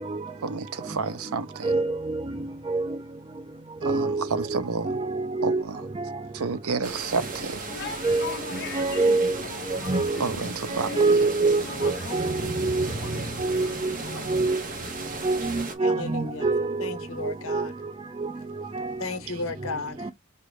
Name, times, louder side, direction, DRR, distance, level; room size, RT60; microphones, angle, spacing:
voice 1, 0.4-1.7 3.8-5.0 5.4-5.9 6.3-7.7 10.2-11.1 19.3-19.4, right 4 dB, 85° right, 0.6 m, -30 dB
voice 2, 1.6-2.2 2.7-2.9 3.8-5.6 8.0-8.3 8.7-9.4 9.7-10.2 11.0-12.9 13.4-13.9 14.3-14.6 15.2-16.9 17.2-17.7 18.2-18.3 18.7-18.8, right 3 dB, 25° right, 0.3 m, -25 dB
sound 1, 6.8-15.8, right 3 dB, 40° right, 1.0 m, -36 dB
sound 2, 7.7-14.3, left 4 dB, 50° left, 0.7 m, -40 dB
voice 3, 15.8-16.5 16.8-17.7 19.0-20.1, left 3 dB, 70° left, 0.9 m, -34 dB
5.1 x 2.3 x 3.2 m
head